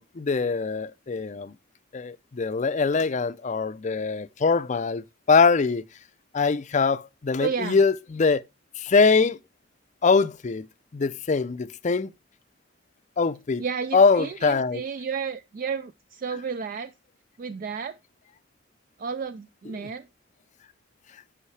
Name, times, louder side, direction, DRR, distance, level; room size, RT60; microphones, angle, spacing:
voice 1, 0.0-1.5 1.9-5.8 6.3-8.4 8.8-9.4 10.0-10.7 10.9-12.1 13.2-13.6 13.9-14.8, left 4 dB, 40° left, 0.5 m, -23 dB
voice 2, 7.4-7.8 13.6-16.9 17.4-18.0 19.0-20.1, right 6 dB, 45° right, 0.3 m, -32 dB
8.2 x 5.7 x 3.2 m
head